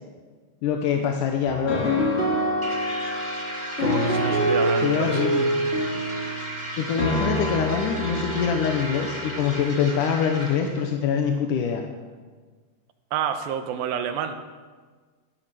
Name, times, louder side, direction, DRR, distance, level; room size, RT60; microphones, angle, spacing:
voice 1, 0.6-1.9 4.8-5.5 6.8-11.8, left 7 dB, 70° left, 3 dB, 2.2 m, -24 dB
sound 1, 1.4-10.1, equal, 20° left, 1.7 m, -26 dB
sound 2, 2.6-10.9, right 1 dB, 20° right, 0.8 m, -35 dB
voice 2, 3.8-5.2 13.1-14.4, right 8 dB, 75° right, 8 dB, 2.5 m, -29 dB
20.5 x 11.5 x 5.9 m, 1.5 s
omnidirectional pair, 4.5 m